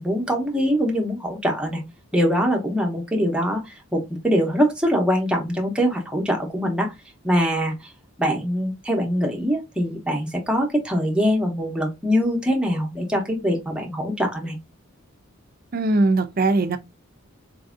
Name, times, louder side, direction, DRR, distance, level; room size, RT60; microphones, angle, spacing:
voice 1, 0.0-1.8 2.1-6.9 7.2-7.9 8.2-14.6, equal, 5° right, 0.7 m, -23 dB
voice 2, 15.7-16.8, right 2 dB, 45° right, 0.4 m, -20 dB
4.2 x 2.6 x 2.4 m
head